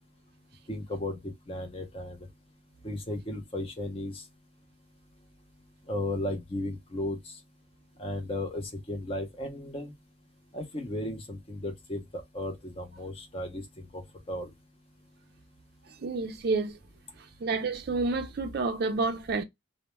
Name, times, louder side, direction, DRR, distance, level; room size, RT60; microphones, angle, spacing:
voice 1, 0.7-2.2 2.8-4.2 5.9-7.3 8.0-9.9 10.5-14.5, left 1 dB, 30° left, 0.5 m, -35 dB
voice 2, 16.0-16.7 17.4-19.4, right 3 dB, 50° right, 0.4 m, -29 dB
2.1 x 2.0 x 2.9 m
head